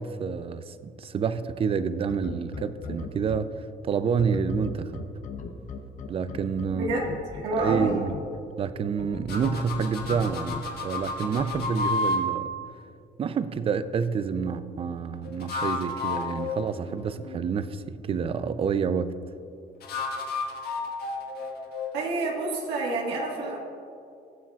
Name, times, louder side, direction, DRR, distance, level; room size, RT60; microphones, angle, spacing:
voice 1, 0.0-3.5 3.8-5.1 6.1-7.0 7.6-8.1 8.6-12.5 13.2-19.2, right 6 dB, 35° right, 0.5 m, -28 dB
sound 1, 2.1-3.4 4.2-8.2 9.0-10.6 11.4-11.6, left 6 dB, 50° left, 0.8 m, -37 dB
voice 2, 6.7-7.0 7.3-8.1 21.9-23.6, right 2 dB, 85° right, 1.7 m, -28 dB
sound 2, 9.3-12.2 15.3-17.4 19.8-22.7, left 3 dB, 65° left, 1.5 m, -32 dB
20.0 x 7.2 x 2.4 m
cardioid pair, 110°, 17 cm